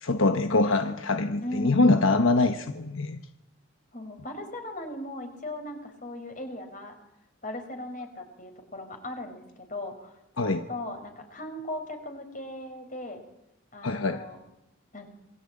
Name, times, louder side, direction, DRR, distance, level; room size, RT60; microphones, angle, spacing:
voice 1, 0.0-3.2 10.4-10.6 13.8-14.2, left 2 dB, 75° left, 8 dB, 1.2 m, -24 dB
voice 2, 1.4-1.9 3.9-7.0 7.4-13.2 13.7-14.4 14.9-15.1, left 1 dB, 40° left, 6 dB, 4.8 m, -38 dB
27.0 x 21.5 x 8.8 m, 0.92 s
head